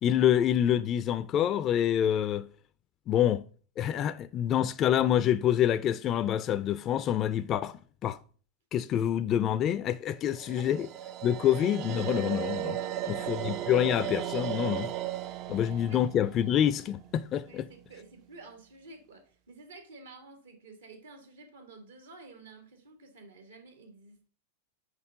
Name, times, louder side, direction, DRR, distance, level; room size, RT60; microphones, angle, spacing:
voice 1, 0.0-2.5 3.1-3.4 3.8-8.2 8.7-10.9 11.2-12.8 13.1-14.9 15.5-17.7, left 10 dB, 35° left, 0.4 m, -27 dB
sound 1, 10.3-17.4, right 12 dB, 45° right, 0.4 m, -36 dB
voice 2, 12.8-13.4 15.5-16.0 17.5-24.3, right 3 dB, 80° right, 1.9 m, -51 dB
6.4 x 5.4 x 3.6 m
hypercardioid pair, 100°, 0 cm